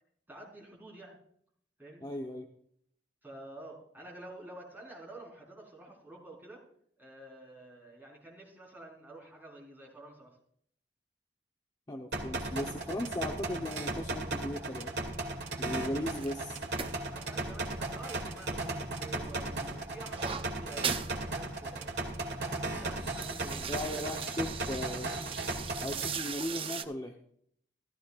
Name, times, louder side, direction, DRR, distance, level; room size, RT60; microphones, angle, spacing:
voice 1, 0.3-1.2 1.8-2.1 3.2-6.6 7.0-10.4 17.1-21.9 22.3-24.0, right 1 dB, 10° right, -3 dB, 4.3 m, -49 dB
voice 2, 2.0-2.5 11.9-14.9 15.6-16.6 23.7-25.1 25.8-27.1, left 1 dB, 20° left, 2 dB, 0.9 m, -37 dB
sound 1, 12.1-26.1, right 2 dB, 60° right, 2.3 m, -36 dB
sound 2, 16.1-18.6 19.0-21.1 21.5-21.6 21.9-22.3 22.7-26.8, right 7 dB, 30° right, 0.5 m, -40 dB
15.5 x 13.5 x 2.5 m, 0.65 s
head